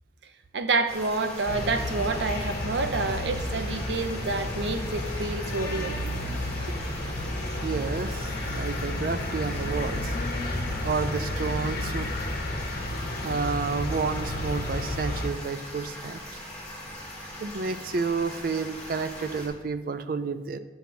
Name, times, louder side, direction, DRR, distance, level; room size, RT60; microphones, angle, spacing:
voice 1, 0.5-6.0 6.7-6.8, right 3 dB, 90° right, 8 dB, 0.7 m, -28 dB
sound 1, 0.9-19.5, left 1 dB, 5° left, 1.7 m, -41 dB
sound 2, 1.5-15.3, left 1 dB, 60° left, 1.3 m, -32 dB
voice 2, 7.6-10.2 10.8-12.1 13.2-16.4 17.4-20.6, right 4 dB, 55° right, 11 dB, 0.4 m, -30 dB
9.6 x 5.9 x 4.2 m, 1.2 s
head